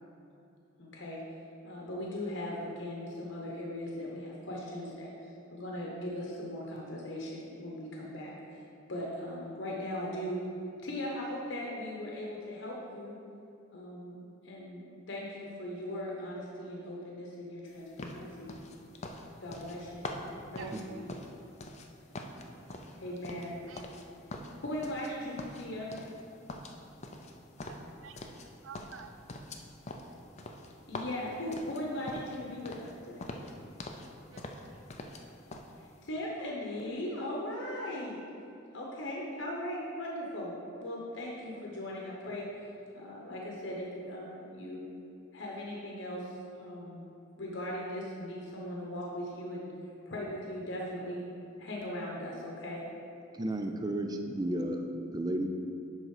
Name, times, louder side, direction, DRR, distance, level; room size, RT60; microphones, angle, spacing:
voice 1, 0.8-1.2 1.6-5.1 5.5-8.3 8.9-10.4 10.8-13.2 13.7-18.5 19.4-20.1 20.5-21.2 23.0-23.6 24.6-25.9 30.9-33.3 36.0-38.2 38.7-42.5 42.9-44.8 45.3-46.3 46.6-47.0 47.4-49.7 50.1-51.3 51.6-52.8, left 1 dB, 65° left, -3 dB, 1.0 m, -39 dB
sound 1, 18.0-21.9 22.1-24.0 24.3-25.1 25.4-26.2 26.5-28.5 28.7-32.4 32.7-32.9 33.2-34.1 34.4-35.2 35.5-35.7, left 2 dB, 35° left, 0.5 m, -43 dB
voice 2, 22.3-23.8 24.4-24.6 27.7-28.2 28.6-29.1 34.3-34.8, right 7 dB, 75° right, 7 dB, 0.5 m, -52 dB
voice 3, 53.3-55.5, right 1 dB, 20° right, 5 dB, 0.4 m, -33 dB
10.5 x 3.9 x 4.8 m, 2.8 s
head